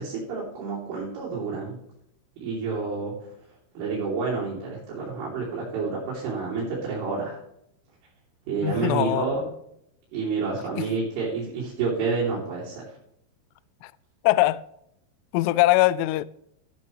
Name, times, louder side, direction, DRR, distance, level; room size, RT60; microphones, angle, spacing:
voice 1, 0.0-1.8 2.4-3.1 3.8-7.4 8.5-9.4 10.1-12.8, right 4 dB, 85° right, 5.5 m, -29 dB
voice 2, 8.6-9.3 10.8-10.9 13.8-13.9 14.2-14.6 15.3-16.3, left 17 dB, 90° left, 2.4 m, -21 dB
13.5 x 9.9 x 3.2 m
omnidirectional pair, 5.4 m